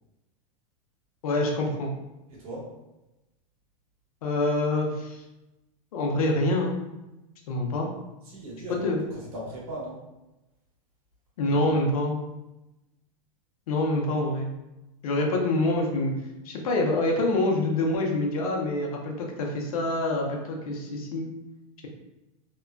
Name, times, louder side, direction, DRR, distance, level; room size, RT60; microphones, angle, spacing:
voice 1, 1.2-1.9 4.2-5.2 5.9-6.7 7.5-7.9 8.7-9.0 11.4-12.2 13.7-14.5 15.0-16.1 16.4-21.3, left 2 dB, 90° left, 1 dB, 0.6 m, -26 dB
voice 2, 2.3-2.7 8.2-10.0 11.4-11.7, right 1 dB, 85° right, -5 dB, 1.3 m, -39 dB
2.9 x 2.2 x 2.4 m, 0.99 s
supercardioid pair, 135°, 18 cm